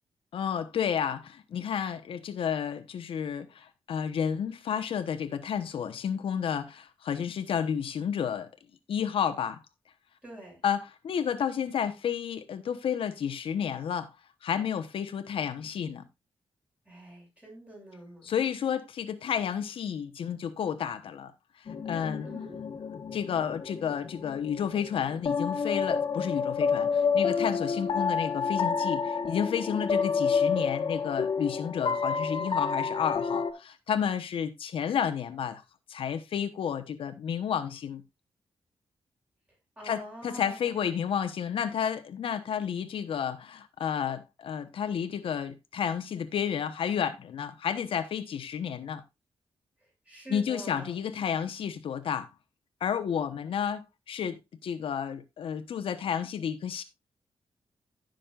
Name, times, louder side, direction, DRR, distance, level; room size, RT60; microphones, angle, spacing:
voice 1, 0.3-8.5 8.9-9.6 10.6-14.1 14.4-16.0 18.2-21.3 21.8-22.3 23.1-35.6 35.9-38.0 39.8-49.0 50.3-52.3 52.8-56.8, left 8 dB, 75° left, 1.1 m, -31 dB
voice 2, 10.2-10.6 16.9-18.3 22.2-22.6 29.6-29.9 39.8-40.9 49.8-51.0, right 1 dB, 15° right, 7.0 m, -46 dB
sound 1, 21.7-33.5, left 5 dB, 50° left, 1.5 m, -29 dB
16.0 x 6.5 x 2.5 m
wide cardioid pair, 150°, 9 cm